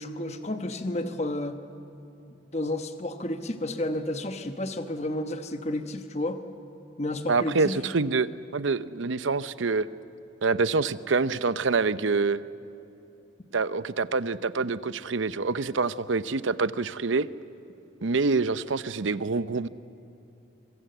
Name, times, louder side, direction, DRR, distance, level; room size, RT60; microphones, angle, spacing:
voice 1, 0.0-1.6 2.3-6.4 7.0-7.8, left 1 dB, 35° left, 7 dB, 1.1 m, -31 dB
voice 2, 7.3-8.3 8.5-9.9 10.4-12.4 13.5-17.3 18.0-19.7, right 4 dB, 75° right, 15 dB, 0.7 m, -26 dB
25.0 x 23.5 x 8.0 m, 2.9 s
head